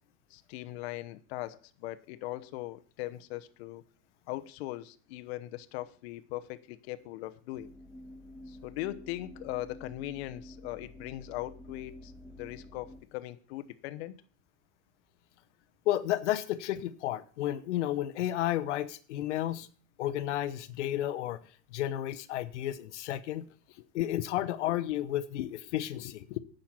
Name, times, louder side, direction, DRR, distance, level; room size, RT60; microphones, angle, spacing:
voice 1, 0.3-3.8 4.3-7.7 8.5-12.1 12.4-14.1 23.8-24.2 24.7-24.8 25.4-26.4, left 16 dB, 65° left, 0.9 m, -40 dB
sound 1, 7.5-13.0, left 1 dB, 5° right, 1.4 m, -49 dB
voice 2, 15.9-19.7 20.0-21.4 21.7-23.5 23.9-25.5 25.7-26.2, left 13 dB, 90° left, 0.9 m, -32 dB
10.5 x 6.6 x 7.3 m
supercardioid pair, 145°, 34 cm